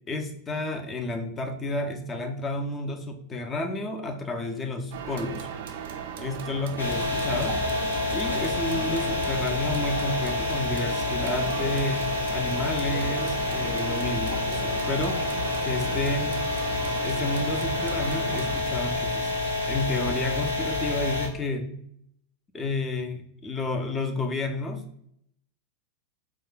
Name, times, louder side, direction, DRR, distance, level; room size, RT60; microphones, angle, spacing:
voice 1, 0.1-5.5 6.2-7.6 8.1-12.0 12.3-15.2 15.6-16.3 17.0-19.3 19.7-21.7 22.5-24.8, left 2 dB, 20° left, 5 dB, 0.5 m, -31 dB
sound 1, 4.9-18.6, right 7 dB, 55° right, 0.3 m, -37 dB
sound 2, 6.8-21.3, left 2 dB, 85° left, 0.7 m, -28 dB
2.4 x 2.2 x 3.7 m, 0.69 s
figure-of-eight pair, 90°, 0 cm